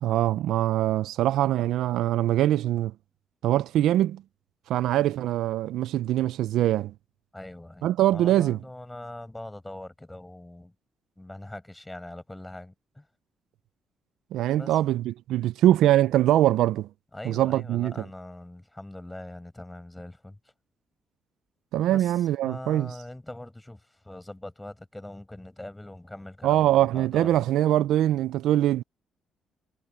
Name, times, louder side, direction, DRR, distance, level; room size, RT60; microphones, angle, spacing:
voice 1, 0.0-2.9 3.4-4.2 4.7-6.9 7.8-8.6 14.3-16.9 17.2-17.9 21.7-22.9 26.4-28.8, right 13 dB, 85° right, 0.5 m, -23 dB
voice 2, 7.3-10.7 11.2-13.1 14.6-14.8 17.1-20.4 21.9-27.5, left 1 dB, 10° left, 5.1 m, -42 dB
cardioid pair, 90°, 0 cm